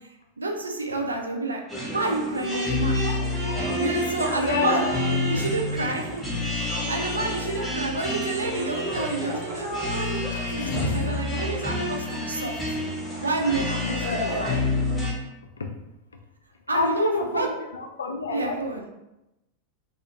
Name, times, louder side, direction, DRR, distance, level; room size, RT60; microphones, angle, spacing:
voice 1, 0.0-1.6 1.9-3.0 3.8-4.9 5.3-12.6 13.2-14.6 16.7-17.5 18.3-18.9, right 3 dB, 75° right, 2 dB, 0.3 m, -29 dB
sound 1, 1.7-15.1, left 1 dB, 5° left, 0.7 m, -28 dB
voice 2, 4.4-5.2 10.5-11.2 13.8-14.6 15.6-15.7 16.7-18.6, left 3 dB, 70° left, 3 dB, 0.3 m, -28 dB
2.3 x 2.0 x 2.7 m, 0.94 s
figure-of-eight pair, 90°, 0 cm